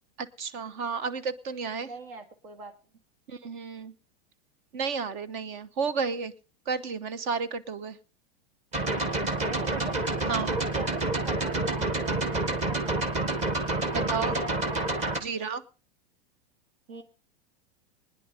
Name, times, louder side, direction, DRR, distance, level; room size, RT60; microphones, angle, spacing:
voice 1, 0.2-1.9 3.3-3.9 4.7-6.3 6.7-8.0 10.3-10.6 13.9-14.3 15.2-15.6, right 5 dB, 50° right, 15 dB, 1.1 m, -32 dB
voice 2, 1.9-2.7 9.4-10.0 10.5-13.4 13.8-14.9 16.9-17.0, right 4 dB, 70° right, 7 dB, 2.2 m, -41 dB
sound 1, 8.7-15.2, right 2 dB, 20° right, 1.5 m, -28 dB
21.0 x 10.0 x 4.1 m, 0.36 s
supercardioid pair, 160°, 30 cm